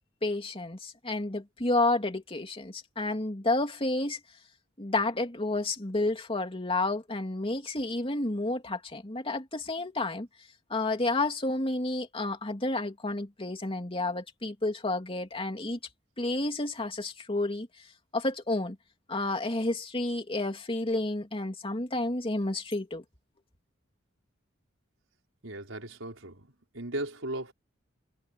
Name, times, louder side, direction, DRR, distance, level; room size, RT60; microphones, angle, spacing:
voice 1, 0.2-4.2 4.8-10.3 10.7-15.8 16.2-17.7 18.1-18.8 19.1-23.0, left 2 dB, 30° left, 2.8 m, -30 dB
voice 2, 25.4-26.5 26.7-27.5, right 1 dB, 90° right, 4.9 m, -36 dB
head